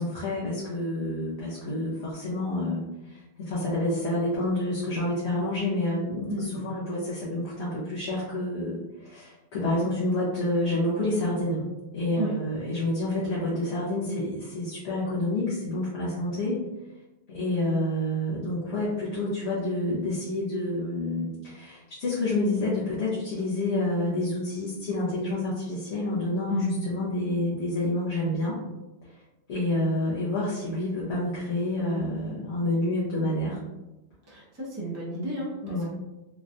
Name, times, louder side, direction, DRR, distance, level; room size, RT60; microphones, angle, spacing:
voice 1, 0.0-11.7 11.9-16.6 17.3-28.6 29.5-33.6 35.6-35.9, left 1 dB, 85° left, -8 dB, 1.0 m, -28 dB
voice 2, 6.3-6.8 12.2-12.3 26.5-26.8 34.3-35.9, equal, 20° right, -5 dB, 0.4 m, -32 dB
3.1 x 2.2 x 2.5 m, 1.0 s
omnidirectional pair, 1.1 m